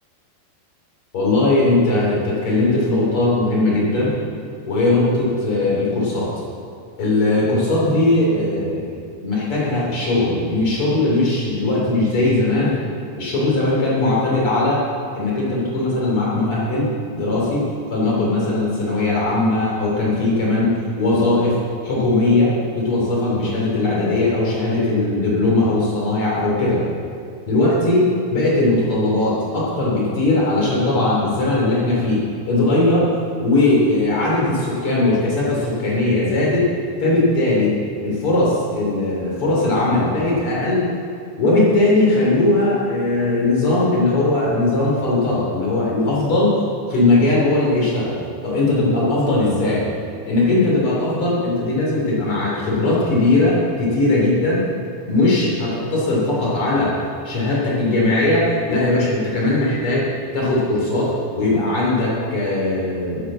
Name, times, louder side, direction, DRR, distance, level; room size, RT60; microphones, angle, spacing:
voice 1, 1.1-4.1 4.7-6.3 7.0-9.0 9.2-12.8 13.2-14.8 15.1-16.9 17.1-17.6 17.9-26.8 27.4-33.1 33.4-36.7 37.0-40.8 41.4-46.6 46.9-49.9 50.3-54.6 55.1-57.0 57.2-63.3, left 2 dB, 35° left, -5 dB, 3.4 m, -19 dB
9.9 x 9.4 x 7.3 m, 2.3 s
omnidirectional pair, 4.9 m